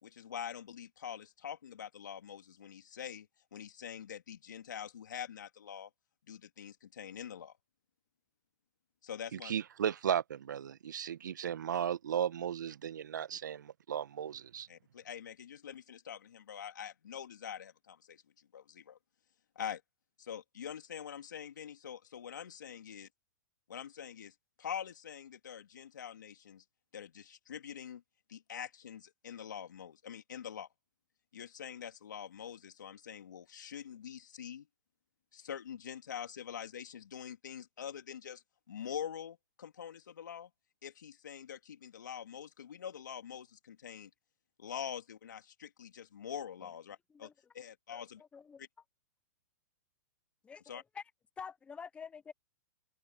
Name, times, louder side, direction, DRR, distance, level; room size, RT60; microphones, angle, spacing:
voice 1, 0.0-5.9 6.3-7.5 9.0-9.5 14.7-18.2 18.5-19.0 19.5-19.8 20.2-23.1 23.7-26.6 26.9-28.0 28.3-30.7 31.3-34.7 35.3-40.5 40.8-44.1 44.6-48.2 48.6-48.7 50.6-50.8, left 8 dB, 85° left, 3.1 m, -45 dB
voice 2, 9.3-14.7, right 9 dB, 80° right, 1.4 m, -35 dB
voice 3, 50.4-51.0 51.4-52.3, left 6 dB, 10° left, 0.7 m, -47 dB
hypercardioid pair, 135°, 10 cm